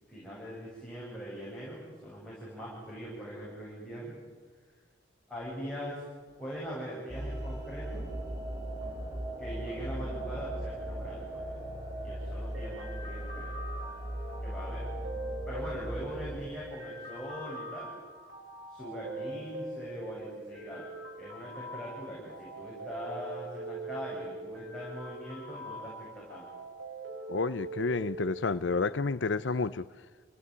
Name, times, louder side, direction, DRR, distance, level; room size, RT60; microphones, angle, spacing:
voice 1, 0.1-4.2 5.3-6.0 6.4-8.0 9.4-11.6 12.0-13.6 14.4-15.1 15.5-17.9 18.7-20.9 21.2-26.5, equal, 5° left, -7 dB, 7.7 m, -41 dB
sound 1, 7.1-16.5, right 1 dB, 15° right, 6.7 m, -38 dB
sound 2, 12.5-28.5, right 2 dB, 80° right, 6.9 m, -43 dB
voice 2, 27.3-29.9, left 4 dB, 80° left, 14 dB, 0.7 m, -30 dB
28.0 x 17.5 x 9.7 m, 1.5 s
head